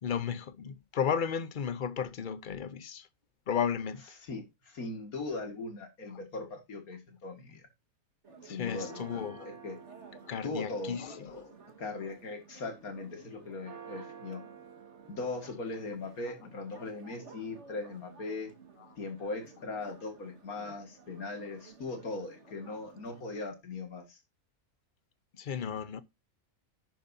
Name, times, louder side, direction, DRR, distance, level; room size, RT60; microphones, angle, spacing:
voice 1, 0.0-3.1 3.5-4.0 8.5-9.5 10.2-11.5 19.8-19.9 25.4-26.0, left 7 dB, 45° left, 0.7 m, -34 dB
voice 2, 4.2-7.7 8.4-9.2 9.6-9.8 10.4-11.0 11.8-14.4 15.1-18.5 19.0-24.2, left 3 dB, 85° left, 2.5 m, -39 dB
Church bell, 8.2-23.2, right 5 dB, 55° right, 2.0 m, -52 dB
11.0 x 9.0 x 2.7 m
omnidirectional pair, 1.5 m